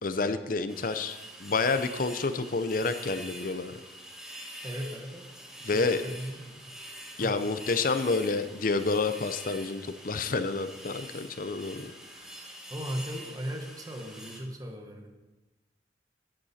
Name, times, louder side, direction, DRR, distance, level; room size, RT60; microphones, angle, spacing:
voice 1, 0.0-3.7 5.6-6.0 7.2-11.9, left 3 dB, 50° left, 10 dB, 0.7 m, -29 dB
sound 1, 0.7-14.4, equal, 5° right, 1.6 m, -45 dB
voice 2, 4.6-5.3 5.6-6.6 7.2-7.3 12.7-15.1, equal, 20° right, 3 dB, 1.3 m, -37 dB
11.5 x 10.5 x 4.3 m, 1.1 s
head